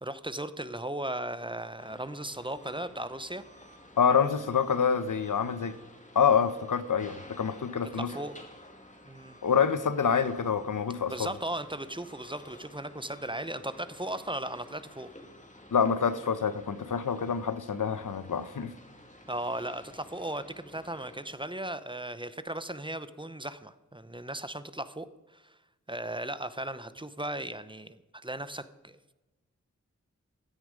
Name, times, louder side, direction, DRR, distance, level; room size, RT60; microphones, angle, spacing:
voice 1, 0.0-3.5 7.9-8.3 9.0-9.4 11.1-15.1 19.3-25.6 25.9-29.1, right 1 dB, 15° right, 0.7 m, -37 dB
sound 1, 1.8-21.6, left 1 dB, 25° left, 2.0 m, -52 dB
voice 2, 4.0-5.8 6.1-8.1 9.4-11.3 15.7-18.7, left 6 dB, 85° left, 0.8 m, -26 dB
15.5 x 9.8 x 5.1 m
wide cardioid pair, 70°, 30 cm